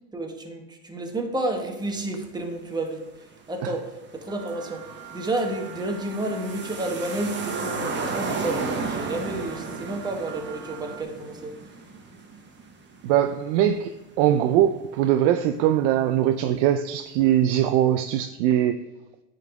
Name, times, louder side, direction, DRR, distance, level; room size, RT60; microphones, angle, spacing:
voice 1, 0.1-3.1 3.5-11.6, right 2 dB, 10° right, 1.1 m, -30 dB
sound 1, 3.6-3.7 4.0-13.8 14.1-14.2, right 4 dB, 25° right, 1.2 m, -34 dB
sound 2, 4.3-11.0, right 9 dB, 45° right, 1.1 m, -43 dB
voice 2, 13.0-18.8, right 11 dB, 60° right, 0.5 m, -21 dB
9.2 x 4.0 x 4.7 m
supercardioid pair, 110°, 42 cm